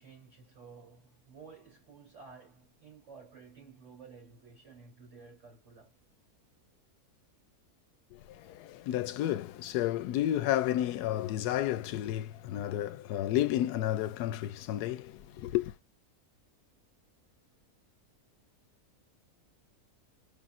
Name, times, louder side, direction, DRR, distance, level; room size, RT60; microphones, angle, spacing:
voice 1, 0.0-5.9, right 5 dB, 50° right, 3.7 m, -53 dB
voice 2, 8.1-15.7, left 13 dB, 90° left, 1.1 m, -31 dB
5.2 x 3.5 x 2.4 m
omnidirectional pair, 1.6 m